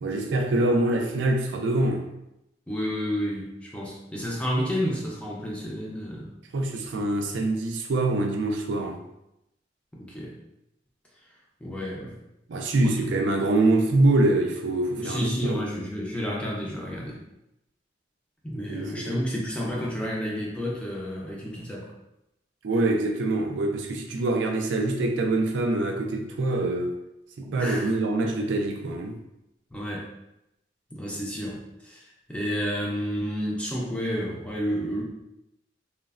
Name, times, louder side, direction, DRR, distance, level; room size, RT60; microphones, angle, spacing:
voice 1, 0.0-2.1 6.5-9.0 12.5-15.7 18.7-19.2 22.6-27.0 27.4-29.2, right 2 dB, 80° right, 2 dB, 0.4 m, -25 dB
voice 2, 2.7-6.3 9.9-10.4 11.6-12.2 12.8-12.9 15.0-17.2 18.4-21.9 27.4-28.0 29.7-30.1 30.9-35.0, equal, 5° left, -4 dB, 0.4 m, -30 dB
3.0 x 2.0 x 2.4 m, 0.86 s
head